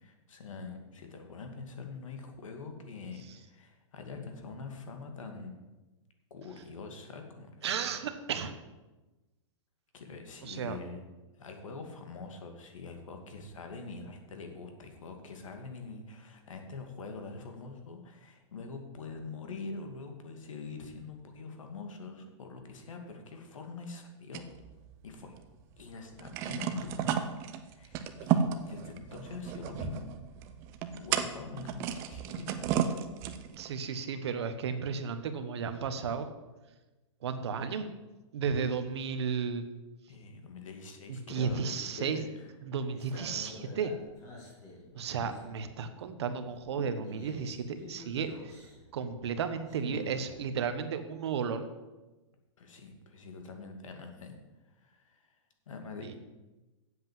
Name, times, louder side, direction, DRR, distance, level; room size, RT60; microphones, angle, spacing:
voice 1, 0.0-5.5 6.3-8.0 9.9-11.0 11.4-24.4 25.0-25.3 25.8-27.4 27.7-30.1 30.9-32.9 40.1-42.5 52.6-54.4 54.8-55.4 55.7-56.1, left 4 dB, 85° left, 4 dB, 2.4 m, -44 dB
voice 2, 7.6-8.5 10.4-10.8 33.5-36.3 37.2-37.9 38.3-39.6 41.1-42.2 42.6-43.9 44.9-48.7 48.9-51.7 56.0-56.1, right 6 dB, 55° right, 9 dB, 1.2 m, -34 dB
sound 1, 24.3-25.5 25.8-25.9 26.1-33.7, right 8 dB, 15° right, 0.4 m, -33 dB
sound 2, 42.9-46.1 46.4-50.6, left 2 dB, 20° left, 2.2 m, -48 dB
7.9 x 7.8 x 7.5 m, 1.1 s
hypercardioid pair, 170°, 16 cm